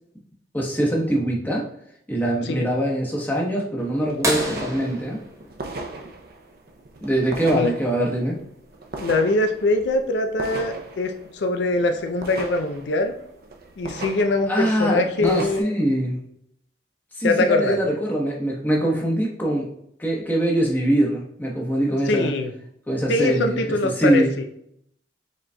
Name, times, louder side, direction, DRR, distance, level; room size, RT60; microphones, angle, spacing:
voice 1, 0.5-1.7 2.1-5.2 7.0-8.3 14.5-16.2 17.1-19.6 20.0-22.3 22.9-24.3, right 1 dB, 10° left, -2 dB, 0.9 m, -23 dB
sound 1, 3.8-15.6, right 2 dB, 55° right, 0.5 m, -38 dB
sound 2, 4.2-6.7 8.6-8.7 10.9-11.0 12.7-13.0 13.8-13.9, equal, 15° right, 0.9 m, -29 dB
voice 2, 9.0-13.1 13.8-15.7 17.2-17.8 22.1-22.5 23.1-24.4, left 2 dB, 70° left, 5 dB, 0.4 m, -23 dB
5.1 x 3.8 x 2.2 m, 0.72 s
head